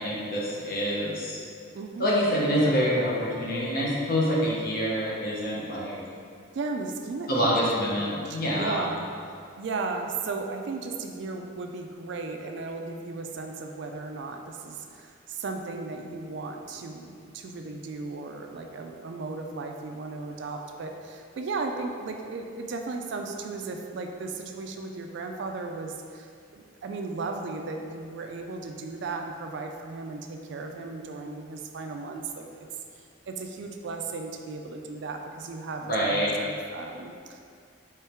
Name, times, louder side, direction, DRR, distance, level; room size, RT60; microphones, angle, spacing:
voice 1, 0.0-1.4 2.0-5.9 7.3-8.9 35.9-36.3, equal, 45° left, -5 dB, 0.9 m, -26 dB
voice 2, 1.7-2.1 6.5-7.5 8.0-9.0 9.6-32.7 32.9-37.4, right 3 dB, 55° right, 4 dB, 0.3 m, -36 dB
3.5 x 3.2 x 4.4 m, 2.3 s
head